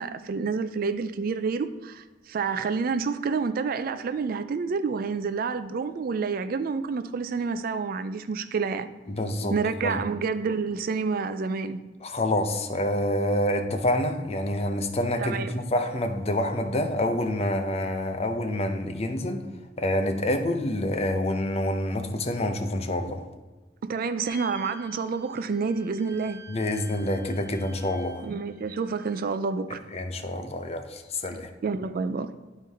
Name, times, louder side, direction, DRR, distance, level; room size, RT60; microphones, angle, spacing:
voice 1, 0.0-8.9 9.5-11.8 15.2-15.6 23.8-26.4 28.2-29.8 31.3-32.3, right 5 dB, 50° right, 0.4 m, -29 dB
voice 2, 9.1-9.6 9.8-10.0 12.0-19.5 19.8-23.2 26.5-28.3 29.7-31.5, left 1 dB, 35° left, 0.7 m, -27 dB
sound 1, 24.3-29.3, equal, 10° left, 1.7 m, -50 dB
10.5 x 4.5 x 3.5 m
head